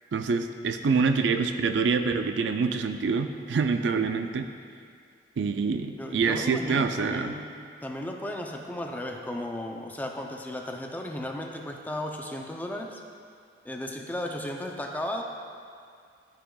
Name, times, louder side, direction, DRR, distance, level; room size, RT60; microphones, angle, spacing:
voice 1, 0.1-4.5 5.4-7.4, right 5 dB, 70° right, 7 dB, 0.4 m, -26 dB
voice 2, 6.0-7.5 7.8-13.0 13.6-15.2, left 1 dB, 10° left, 1 dB, 0.5 m, -35 dB
12.5 x 4.9 x 2.3 m, 2.3 s
head